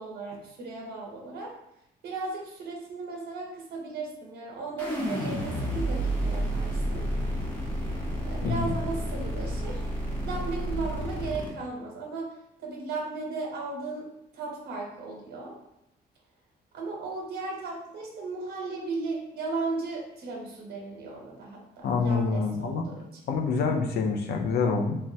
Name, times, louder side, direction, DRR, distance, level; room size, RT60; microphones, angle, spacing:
voice 1, 0.0-1.5 2.0-7.0 8.2-9.8 10.2-12.4 12.6-14.1 14.3-15.6 16.7-23.2, right 3 dB, 85° right, -2 dB, 0.8 m, -36 dB
sound 1, 4.8-11.5, right 1 dB, 10° left, 0.9 m, -30 dB
voice 2, 21.8-22.8 23.3-25.0, left 4 dB, 75° left, 3 dB, 0.5 m, -26 dB
3.3 x 2.2 x 2.7 m, 0.83 s
cardioid pair, 95°, 17 cm